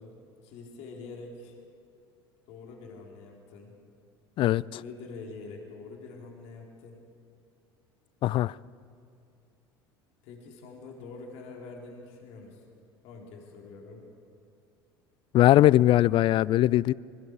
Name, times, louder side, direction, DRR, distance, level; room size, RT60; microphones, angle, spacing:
voice 1, 0.0-1.6 2.5-3.7 4.7-7.0 10.2-12.6 13.0-14.0, left 3 dB, 55° left, 4.0 m, -45 dB
voice 2, 8.2-8.5 15.3-16.9, left 14 dB, 40° left, 0.4 m, -20 dB
25.0 x 21.5 x 4.8 m
figure-of-eight pair, 70°, 13 cm